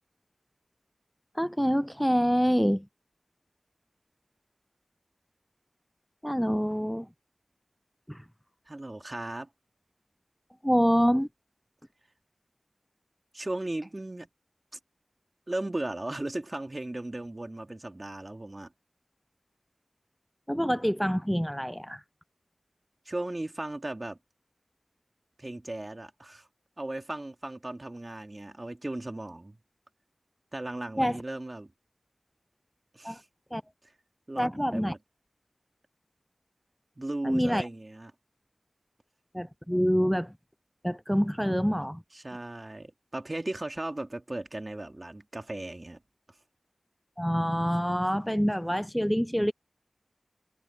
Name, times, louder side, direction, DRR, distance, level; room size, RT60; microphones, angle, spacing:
voice 1, 1.3-2.9 6.2-7.1 8.1-8.3 10.6-11.3 20.5-22.0 31.0-31.2 33.0-33.2 33.5-33.6 34.4-34.9 37.2-37.7 39.3-40.3 40.8-42.0 47.2-49.5, equal, ahead, 0.3 m, -26 dB
voice 2, 8.7-9.5 13.3-14.3 15.5-18.7 23.1-24.2 25.4-26.5 26.8-29.6 30.5-31.7 32.9-33.2 34.3-35.0 37.0-38.1 42.1-46.0, right 2 dB, 35° right, 2.5 m, -36 dB
wide cardioid pair, 65°, 0 cm